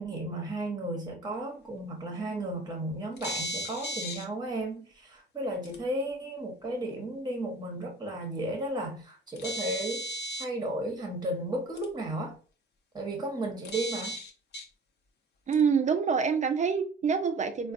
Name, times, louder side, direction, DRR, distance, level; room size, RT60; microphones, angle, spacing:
voice 1, 0.0-10.0 10.4-12.4 12.9-14.2, right 1 dB, 20° right, 0.9 m, -34 dB
sound 1, 3.2-4.3 5.6-5.8 9.4-10.4 11.8-11.9 13.6-14.6 15.5-15.6, equal, 60° left, 0.8 m, -35 dB
voice 2, 15.5-17.7, right 6 dB, 40° right, 0.4 m, -26 dB
3.9 x 2.2 x 2.5 m
cardioid pair, 90°, 20 cm